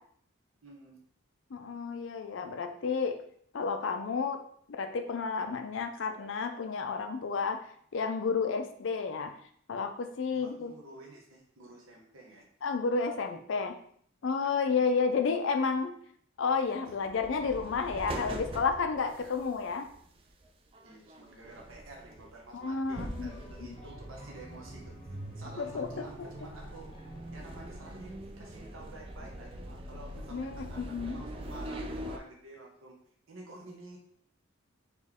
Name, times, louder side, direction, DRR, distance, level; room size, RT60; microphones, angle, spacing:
voice 1, 0.6-1.0 10.3-12.5 14.7-14.9 19.1-19.3 20.8-26.9 27.3-33.0 33.3-34.0, right 2 dB, 75° right, -1 dB, 1.0 m, -50 dB
voice 2, 1.5-3.2 3.5-4.4 4.8-7.6 7.9-9.3 9.7-10.7 12.6-13.8 14.2-15.9 16.4-19.9 22.5-23.3 23.6-23.7 25.6-26.3 30.3-31.2, left 5 dB, 60° left, 6 dB, 0.4 m, -31 dB
sound 1, 16.5-32.2, right 1 dB, 25° right, 0.3 m, -43 dB
sound 2, 22.9-28.0, equal, 20° left, 0.8 m, -53 dB
4.2 x 3.0 x 3.5 m, 0.62 s
head